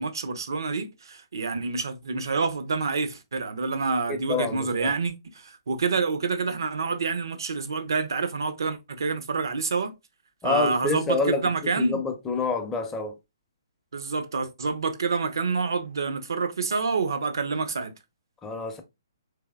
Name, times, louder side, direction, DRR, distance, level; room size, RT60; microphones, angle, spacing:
voice 1, 0.0-9.9 10.4-12.0 13.9-17.9, right 4 dB, 65° right, 0.6 m, -28 dB
voice 2, 4.1-4.9 10.4-13.1 18.4-18.8, left 4 dB, 15° left, 0.6 m, -27 dB
3.3 x 3.2 x 2.2 m
figure-of-eight pair, 130°, 2 cm